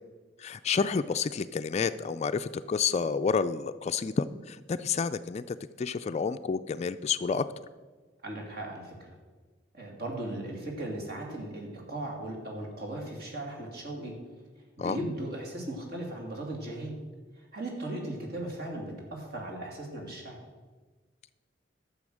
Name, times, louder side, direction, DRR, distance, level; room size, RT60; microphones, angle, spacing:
voice 1, 0.4-7.4 14.8-15.0, left 5 dB, 35° left, 12 dB, 0.3 m, -30 dB
voice 2, 8.2-9.1 9.7-14.2 14.8-17.0 17.4-20.4, right 1 dB, 50° right, 0 dB, 2.7 m, -37 dB
12.0 x 7.1 x 6.3 m, 1.3 s
head